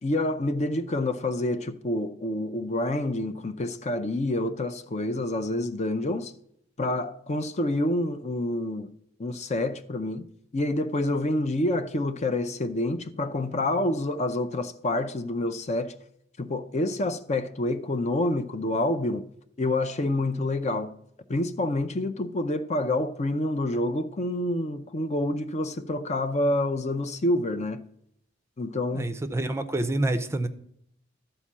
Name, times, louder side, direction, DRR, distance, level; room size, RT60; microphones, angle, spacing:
voice 1, 0.0-6.3 6.8-8.9 9.2-10.3 10.5-15.9 16.4-19.2 19.6-20.9 21.3-27.8 28.6-29.2, left 1 dB, 35° left, 0.5 m, -27 dB
voice 2, 28.9-30.5, right 2 dB, 15° right, 0.5 m, -27 dB
12.5 x 4.5 x 7.3 m
head